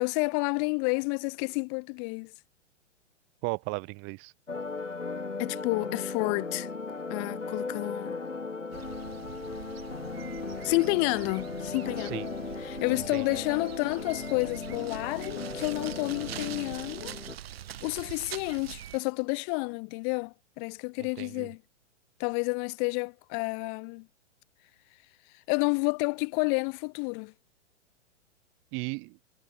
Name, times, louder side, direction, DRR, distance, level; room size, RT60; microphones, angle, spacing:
voice 1, 0.0-2.3 5.4-6.7 7.1-8.2 10.6-12.2 12.6-17.2 17.8-21.6 22.2-24.1 25.3-27.3, left 40 dB or more, 35° left, 2.7 m, -30 dB
voice 2, 3.4-4.3 12.0-12.3 13.0-13.4 21.0-21.5 28.7-29.2, right 31 dB, 30° right, 3.5 m, -36 dB
sound 1, 4.5-17.4, left 4 dB, 80° left, 5.3 m, -37 dB
sound 2, 8.7-19.0, right 11 dB, 55° right, 6.1 m, -44 dB
figure-of-eight pair, 110°, 37 cm